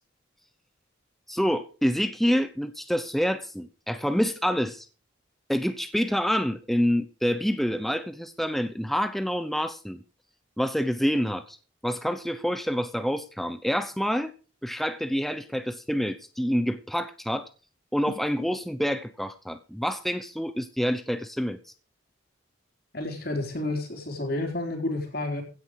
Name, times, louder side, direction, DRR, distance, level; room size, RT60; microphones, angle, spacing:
voice 1, 1.3-4.9 5.5-10.0 10.6-11.6 11.8-14.3 14.6-17.5 17.9-21.6, equal, ahead, 0.8 m, -27 dB
voice 2, 22.9-25.4, left 2 dB, 50° left, 4.0 m, -30 dB
16.0 x 9.8 x 4.8 m
head